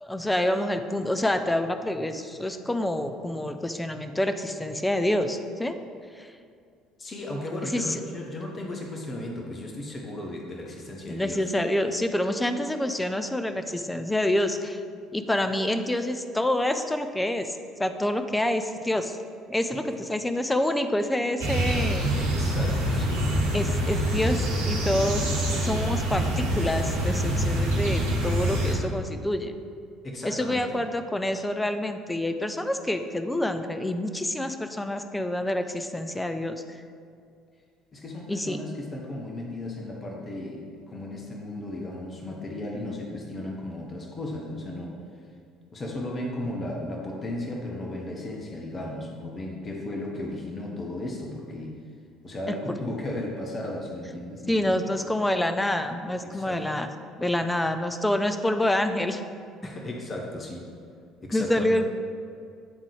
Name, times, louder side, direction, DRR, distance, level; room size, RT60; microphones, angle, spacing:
voice 1, 0.0-5.8 6.2-6.3 7.7-8.0 11.1-14.8 15.1-19.2 19.5-22.1 23.5-29.5 30.2-36.8 38.3-38.6 54.5-56.9 57.2-59.2 61.3-61.9, left 1 dB, 10° left, 8 dB, 0.4 m, -27 dB
voice 2, 7.0-11.5 19.7-19.8 22.2-23.2 30.0-30.8 37.9-45.0 45.7-51.8 52.2-54.8 56.2-56.6 59.6-60.7 61.2-61.8, left 1 dB, 30° left, 0 dB, 0.9 m, -35 dB
sound 1, 21.4-28.7, right 1 dB, 75° right, 1.0 m, -25 dB
8.7 x 3.7 x 3.3 m, 2.3 s
figure-of-eight pair, 55°, 0 cm